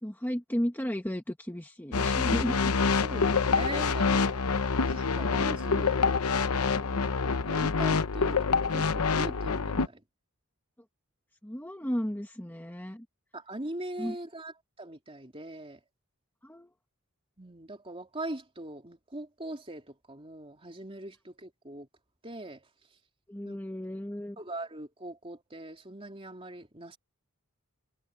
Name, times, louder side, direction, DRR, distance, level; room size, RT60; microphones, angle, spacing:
voice 1, 0.0-2.7 11.4-13.1 14.0-14.2 16.4-16.7 23.3-24.4, equal, 10° left, 1.3 m, -34 dB
sound 1, 1.9-9.9, left 4 dB, 85° left, 0.9 m, -26 dB
voice 2, 3.0-4.4 4.8-5.9 6.2-7.2 7.5-10.0 13.3-15.8 17.4-21.9 22.2-22.7 23.4-23.6 24.4-27.0, right 1 dB, 25° right, 3.3 m, -41 dB
head